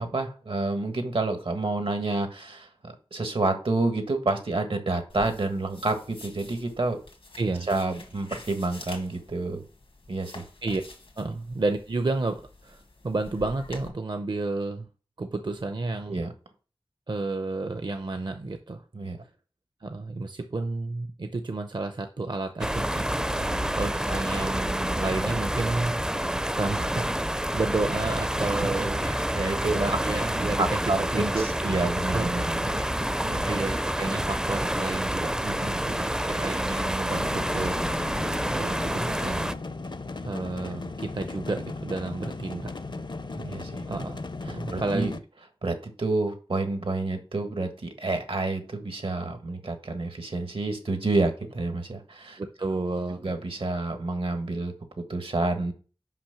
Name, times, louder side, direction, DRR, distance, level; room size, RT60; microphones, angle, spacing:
voice 1, 0.0-7.0 7.7-9.6 10.1-10.4 16.1-16.3 18.9-19.2 23.4-23.7 28.6-30.0 30.6-32.9 33.2-33.4 35.4-35.9 40.6-40.7 43.3-43.9 44.5-45.1 45.6-52.4 53.2-54.7 55.1-55.7, right 2 dB, 80° right, 6 dB, 1.5 m, -29 dB
sound 1, 5.1-13.9, left 2 dB, 90° left, 1.8 m, -47 dB
voice 2, 7.4-7.7 10.6-10.8 11.2-14.9 15.2-16.2 17.1-18.8 19.8-23.1 23.7-26.0 26.5-29.1 29.6-30.8 31.1-32.3 33.4-37.8 38.5-39.5 40.2-42.7 43.9-45.1 52.4-53.2, right 3 dB, 55° right, 7 dB, 0.7 m, -31 dB
sound 2, 22.6-39.5, right 1 dB, 10° right, 0.4 m, -28 dB
sound 3, 37.1-45.2, left 3 dB, 55° left, 0.6 m, -36 dB
5.9 x 5.4 x 5.8 m, 0.38 s
wide cardioid pair, 45°, 9 cm